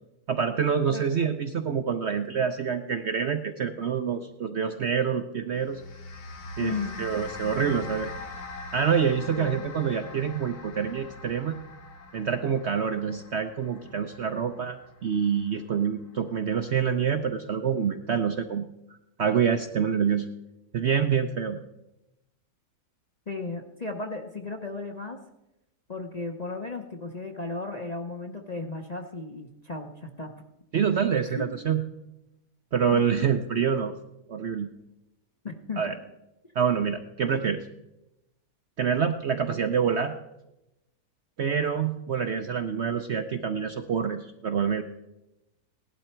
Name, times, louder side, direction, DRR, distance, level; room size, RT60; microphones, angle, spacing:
voice 1, 0.3-5.8 6.6-8.1 8.7-11.6 12.1-18.7 19.2-20.3 20.7-21.6 30.7-31.8 32.7-33.9 34.3-34.7 35.8-35.9 36.6-37.7 38.8-40.1 41.4-44.8, right 7 dB, 55° right, 8 dB, 0.8 m, -26 dB
sound 1, 5.5-16.1, left 2 dB, 65° left, 1.8 m, -42 dB
voice 2, 6.6-7.0 9.3-9.7 23.3-25.2 25.9-30.3 31.3-31.4 32.9-33.2 35.4-36.0, left 3 dB, 35° left, 3 dB, 0.7 m, -35 dB
17.5 x 11.5 x 4.4 m, 0.93 s
omnidirectional pair, 1.8 m